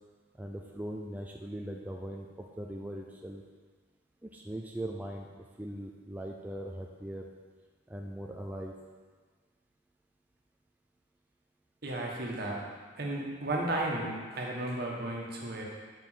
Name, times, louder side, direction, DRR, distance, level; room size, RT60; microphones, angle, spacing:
voice 1, 0.4-3.4 4.2-7.3 7.9-8.7, right 1 dB, 10° right, 0 dB, 0.4 m, -40 dB
voice 2, 11.8-12.6 13.0-15.6, right 1 dB, 55° right, -2 dB, 1.4 m, -34 dB
7.0 x 5.0 x 5.7 m, 1.5 s
head